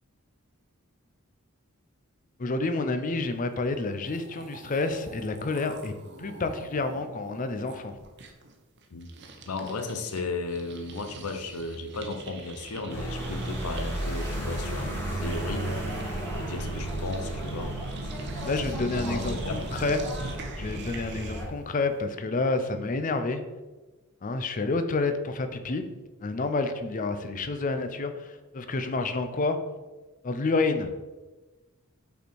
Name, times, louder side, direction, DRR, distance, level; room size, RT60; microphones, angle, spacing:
voice 1, 2.4-5.9 6.2-8.0 18.4-20.0 20.6-23.4 24.2-25.8 26.2-29.6 30.2-30.9, left 3 dB, 35° left, 9 dB, 0.5 m, -29 dB
sound 1, 3.7-3.8 4.0-10.2 10.5-21.6, right 2 dB, 50° right, 0.8 m, -43 dB
voice 2, 9.5-15.7 16.4-17.7 18.5-18.6 19.0-19.6, left 3 dB, 85° left, 8 dB, 0.7 m, -35 dB
sound 2, 12.9-21.5, right 1 dB, 10° left, 1.7 m, -33 dB
5.6 x 4.4 x 4.5 m, 1.2 s
head